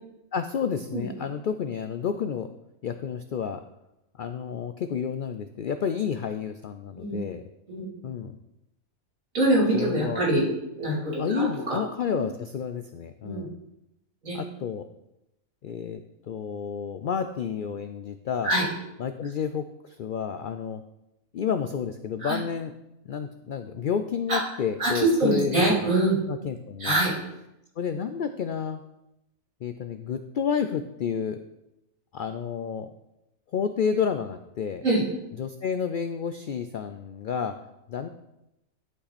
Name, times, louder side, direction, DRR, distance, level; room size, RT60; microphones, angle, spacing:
voice 1, 0.3-2.5 2.8-3.6 4.2-7.4 8.0-8.3 9.7-10.2 11.2-13.6 14.3-14.8 15.6-16.0 16.3-18.5 19.0-20.8 21.3-22.7 23.1-26.0 26.3-27.0 27.8-28.8 29.6-31.4 32.1-32.9 33.5-34.8 35.4-37.5 37.9-38.1, left 7 dB, 80° left, 9 dB, 0.4 m, -30 dB
voice 2, 7.7-8.0 9.3-10.5 10.8-11.8 12.1-12.2 13.2-13.5 14.2-14.4 18.4-18.7 22.2-22.4 24.3-24.4 24.8-26.2 26.8-27.1 34.8-35.0, right 2 dB, 75° right, -6 dB, 3.9 m, -24 dB
11.5 x 5.5 x 4.2 m, 0.87 s
omnidirectional pair, 1.4 m